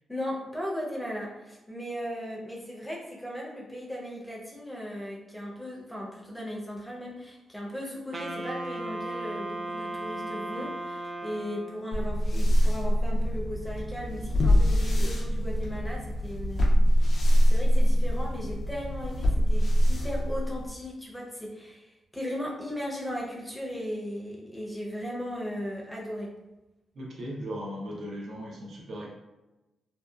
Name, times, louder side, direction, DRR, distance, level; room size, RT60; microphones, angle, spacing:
voice 1, 0.1-16.7 17.5-26.3, equal, 5° left, -3 dB, 0.6 m, -37 dB
Wind instrument woodwind instrument, 8.1-12.0, right 2 dB, 40° right, 0.3 m, -36 dB
sound 1, 11.9-20.8, equal, 45° left, 0.4 m, -24 dB
voice 2, 26.9-29.1, equal, 65° right, -2 dB, 0.7 m, -37 dB
2.6 x 2.2 x 2.3 m, 1.0 s
cardioid pair, 115°, 0 cm